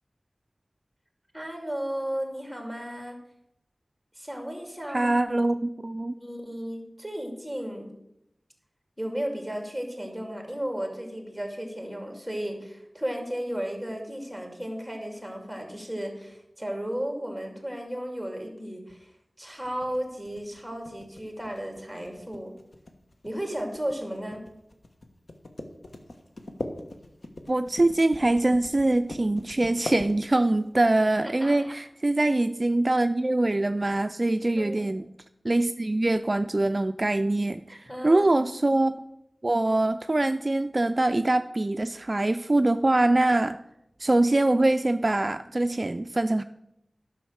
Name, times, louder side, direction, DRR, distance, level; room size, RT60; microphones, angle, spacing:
voice 1, 1.3-3.2 4.2-5.1 6.2-7.9 9.0-19.1 19.4-22.5 23.2-24.4 31.2-31.7 34.6-34.9 37.7-38.5, equal, ahead, 3 dB, 2.5 m, -34 dB
voice 2, 4.9-6.2 27.5-35.0 35.4-38.9 39.4-43.6 44.0-46.4, right 2 dB, 40° right, 9 dB, 0.3 m, -24 dB
sound 1, 19.6-30.7, left 1 dB, 70° left, 1.2 m, -40 dB
11.0 x 6.1 x 6.3 m, 0.83 s
wide cardioid pair, 70°, 0 cm